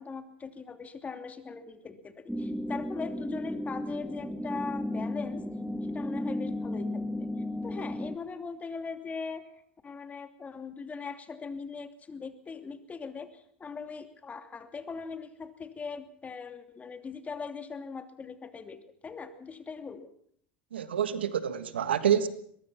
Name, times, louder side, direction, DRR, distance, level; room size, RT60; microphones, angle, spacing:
voice 1, 0.0-5.5 5.9-7.3 7.6-9.5 9.8-20.1, left 5 dB, 25° left, 2.9 m, -40 dB
sound 1, 2.3-8.2, left 1 dB, ahead, 1.8 m, -34 dB
voice 2, 20.7-22.3, right 9 dB, 85° right, 1.5 m, -27 dB
23.0 x 21.5 x 5.9 m
hypercardioid pair, 80°, 6 cm